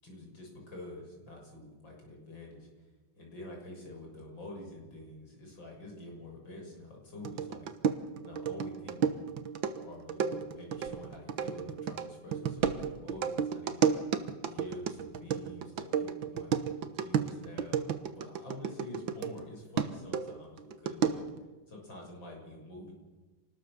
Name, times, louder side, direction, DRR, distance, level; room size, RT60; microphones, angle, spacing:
voice 1, 0.0-2.7 3.2-7.7 8.2-9.3 9.8-16.5 17.0-17.9 18.1-21.3 21.7-22.9, left 1 dB, 70° left, 0 dB, 7.6 m, -47 dB
sound 1, 7.2-19.4 19.8-21.4, right 7 dB, 75° right, 1.9 m, -32 dB
28.0 x 20.0 x 6.8 m, 1.2 s
omnidirectional pair, 2.2 m